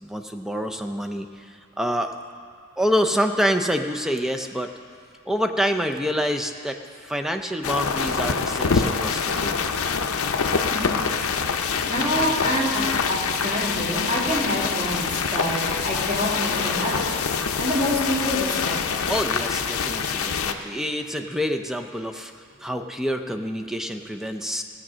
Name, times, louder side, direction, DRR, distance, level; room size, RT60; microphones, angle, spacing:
voice 1, 0.0-2.1 2.8-4.7 5.3-9.8 19.1-22.3 22.6-24.6, equal, ahead, 5 dB, 0.5 m, -27 dB
sound 1, 7.6-20.5, left 5 dB, 75° left, 0.6 m, -25 dB
voice 2, 10.5-11.1 11.4-19.1, left 1 dB, 30° right, -5 dB, 2.4 m, -27 dB
16.0 x 7.3 x 6.2 m, 2.2 s
head